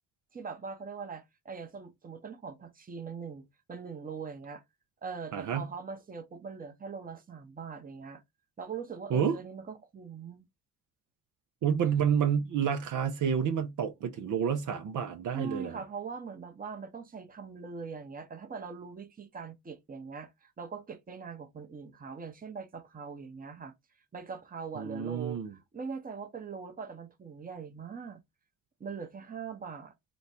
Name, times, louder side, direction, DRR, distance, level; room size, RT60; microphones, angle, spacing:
voice 1, 0.3-4.6 5.0-8.2 8.6-10.5 15.3-23.7 24.1-28.2 28.8-29.9, right 5 dB, 25° right, 0.9 m, -42 dB
voice 2, 5.3-5.7 9.1-9.4 11.6-15.8 24.8-25.5, right 7 dB, 65° right, 0.7 m, -29 dB
3.1 x 2.2 x 4.1 m
supercardioid pair, 60°, 33 cm